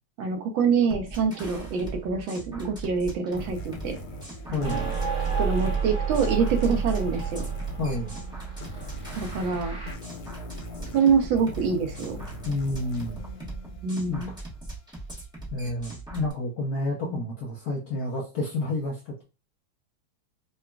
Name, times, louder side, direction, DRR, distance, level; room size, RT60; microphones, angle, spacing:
voice 1, 0.2-4.0 4.5-4.8 5.4-7.5 9.2-9.8 10.9-12.3 13.8-14.3 17.1-17.2, right 5 dB, 75° right, 5 dB, 1.3 m, -25 dB
sound 1, 0.9-16.3, right 2 dB, 5° right, 0.4 m, -40 dB
sound 2, 3.4-14.5, left 3 dB, 90° left, 1.6 m, -42 dB
voice 2, 4.5-4.9 7.8-8.2 12.4-13.2 14.1-14.2 15.5-19.2, left 2 dB, 65° left, -2 dB, 0.9 m, -30 dB
sound 3, 4.6-9.9, right 6 dB, 30° right, 1.1 m, -30 dB
3.8 x 2.3 x 2.2 m, 0.30 s
omnidirectional pair, 2.2 m